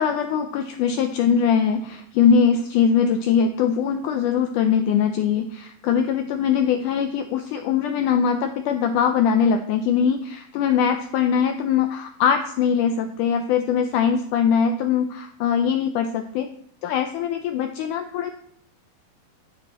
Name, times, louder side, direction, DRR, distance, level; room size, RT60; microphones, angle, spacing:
voice 1, 0.0-16.5 16.8-18.3, left 7 dB, 90° left, 6 dB, 1.8 m, -21 dB
11.0 x 9.0 x 4.2 m, 0.71 s
omnidirectional pair, 4.3 m